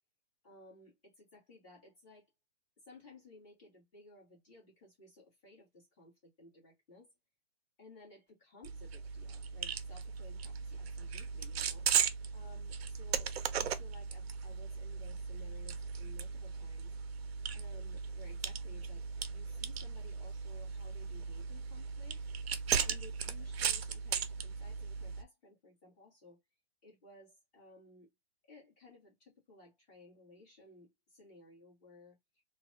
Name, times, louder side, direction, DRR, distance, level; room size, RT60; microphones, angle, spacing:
voice 1, 0.4-2.3 2.9-7.1 7.8-11.9 12.3-17.0 17.5-22.2 22.8-26.4 26.8-28.1 28.5-32.4, left 2 dB, 20° left, 1.7 m, -58 dB
sound 1, 8.6-25.2, right 7 dB, 75° right, 0.6 m, -37 dB
3.2 x 2.3 x 2.7 m
hypercardioid pair, 170°, 31 cm